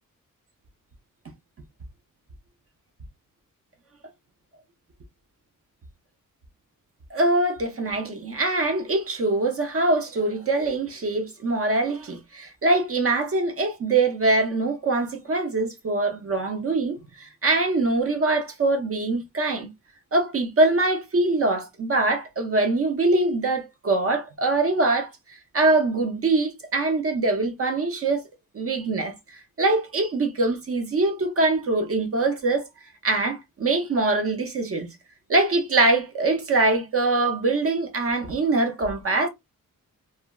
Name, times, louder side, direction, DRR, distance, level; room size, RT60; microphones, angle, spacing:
voice 1, 7.1-19.7 20.1-28.2 28.5-29.1 29.6-32.6 33.0-34.9 35.3-39.3, right 2 dB, 45° right, 0.5 m, -23 dB
3.2 x 2.2 x 2.2 m
wide cardioid pair, 170°, 34 cm